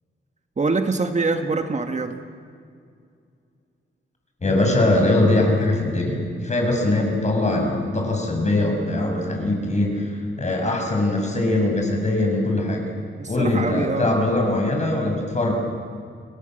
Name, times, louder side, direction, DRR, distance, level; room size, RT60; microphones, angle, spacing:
voice 1, 0.6-2.2 13.2-14.1, right 3 dB, 35° right, 6 dB, 1.7 m, -24 dB
voice 2, 4.4-12.9 13.3-15.5, left 2 dB, 35° left, 2 dB, 7.0 m, -21 dB
30.0 x 21.0 x 7.9 m, 2.3 s
cardioid pair, 95°, 20 cm